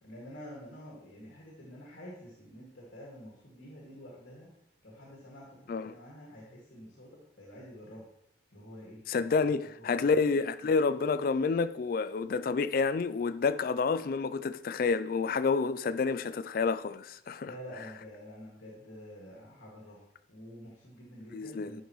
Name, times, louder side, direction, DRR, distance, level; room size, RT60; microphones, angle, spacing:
voice 1, 0.0-4.5 4.8-8.1 8.5-9.3 9.8-10.1 17.4-20.0 20.3-21.8, equal, 70° left, 2.1 m, -48 dB
voice 2, 9.1-17.5 21.3-21.8, left 4 dB, 50° left, 0.3 m, -29 dB
10.0 x 5.3 x 3.0 m
head